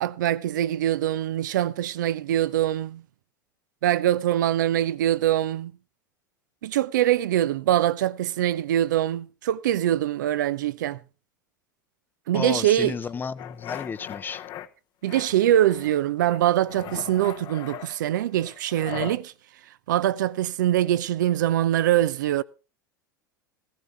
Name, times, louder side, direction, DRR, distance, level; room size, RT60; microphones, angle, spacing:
voice 1, 0.0-3.0 3.8-5.7 6.6-11.0 12.3-12.9 15.0-19.3 19.9-22.4, right 12 dB, 65° right, 0.7 m, -23 dB
voice 2, 12.3-14.4, left 6 dB, 20° left, 0.7 m, -32 dB
sound 1, 13.4-14.7 15.1-16.0 16.2-19.2, left 10 dB, 40° left, 1.1 m, -39 dB
16.0 x 14.0 x 3.4 m
figure-of-eight pair, 85°, 11 cm